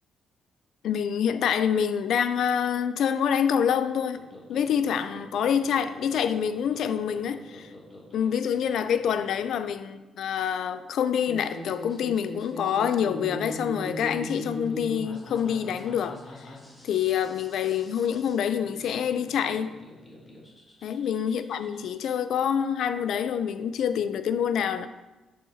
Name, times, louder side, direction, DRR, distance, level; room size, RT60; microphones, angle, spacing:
voice 1, 0.8-4.2 4.5-7.7 8.1-16.2 16.8-19.7 20.8-24.9, left 8 dB, 70° left, 0.4 m, -26 dB
sound 1, 4.1-21.9, equal, 25° left, 1.5 m, -42 dB
6.3 x 5.4 x 2.8 m
cardioid pair, 90°, 0 cm